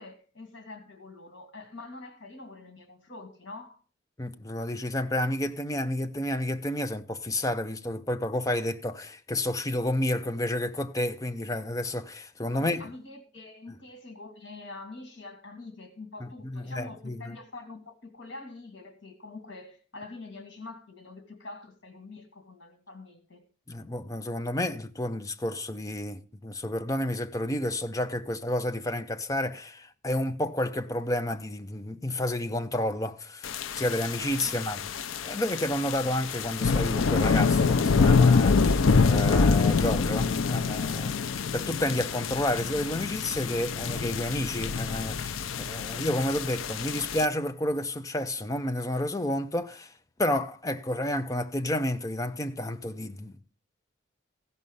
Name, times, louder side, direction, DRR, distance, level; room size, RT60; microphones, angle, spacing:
voice 1, 0.0-3.8 12.5-23.5 34.4-34.8, left 3 dB, 65° left, 2.2 m, -45 dB
voice 2, 4.2-12.9 16.2-17.3 23.7-33.5 33.7-34.8 35.2-41.1 41.5-49.9 50.2-53.3, left 1 dB, 15° left, 0.5 m, -30 dB
sound 1, 33.4-47.3, left 4 dB, 80° left, 0.5 m, -26 dB
15.5 x 5.5 x 5.4 m
head